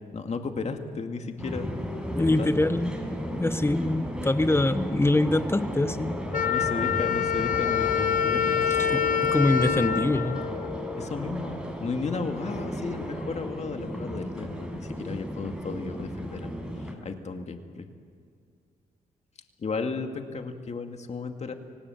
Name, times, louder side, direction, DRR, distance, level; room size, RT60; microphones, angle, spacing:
voice 1, 0.1-1.7 2.2-2.6 6.4-8.9 10.9-16.5 17.0-17.9 19.6-21.5, left 4 dB, 45° left, 5 dB, 2.2 m, -34 dB
sound 1, 1.4-16.9, equal, 5° right, 6.2 m, -35 dB
voice 2, 2.1-3.0 3.4-6.2 8.7-10.4, left 2 dB, 15° left, 12 dB, 1.2 m, -24 dB
Wind instrument woodwind instrument, 6.3-11.1, left 8 dB, 60° left, 0.9 m, -26 dB
25.5 x 18.5 x 7.3 m, 2.1 s
cardioid pair, 75°, 15 cm